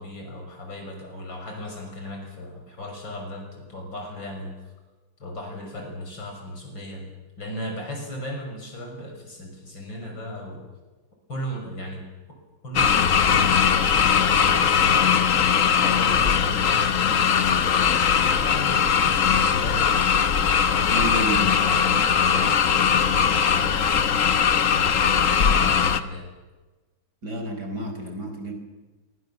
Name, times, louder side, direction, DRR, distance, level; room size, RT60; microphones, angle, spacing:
voice 1, 0.0-4.5 5.2-7.0 7.4-10.6 11.3-12.0 12.6-15.0 15.4-20.1 20.7-24.2 24.7-26.3, left 1 dB, 75° left, 2 dB, 6.7 m, -36 dB
sound 1, 12.7-26.0, left 7 dB, 50° left, 1.2 m, -20 dB
voice 2, 20.9-21.5 27.2-28.5, right 1 dB, 55° right, 4 dB, 5.6 m, -30 dB
26.5 x 24.0 x 7.2 m, 1.2 s
omnidirectional pair, 2.1 m